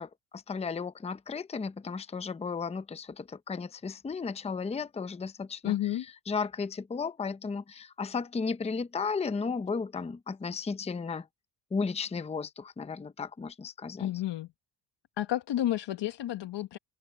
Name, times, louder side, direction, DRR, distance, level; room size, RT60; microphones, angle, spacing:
voice 1, 0.0-11.3 11.7-14.1, left 5 dB, 15° left, 0.6 m, -34 dB
voice 2, 5.6-6.0 14.0-14.5 15.2-16.8, left 13 dB, 55° left, 1.1 m, -31 dB
open air
cardioid pair, 130°, 50 cm